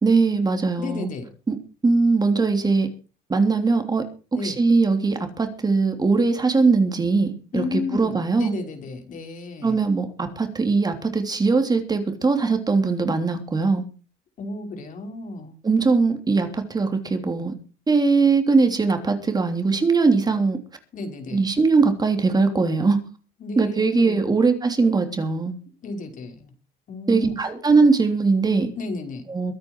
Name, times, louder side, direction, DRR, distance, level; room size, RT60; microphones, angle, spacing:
voice 1, 0.0-1.1 1.5-1.6 1.8-2.9 3.3-4.0 4.4-8.5 9.6-13.8 15.6-17.5 17.9-20.6 21.3-23.0 23.6-25.5 27.1-28.7 29.3-29.5, right 4 dB, 25° right, 6 dB, 3.2 m, -20 dB
voice 2, 0.8-1.3 4.3-4.6 7.5-9.8 14.4-15.6 20.9-21.5 23.4-24.3 25.8-26.5 26.9-27.4 28.8-29.3, left 3 dB, 50° left, 5 dB, 5.3 m, -32 dB
22.5 x 9.7 x 4.7 m, 0.35 s
cardioid pair, 110°, 17 cm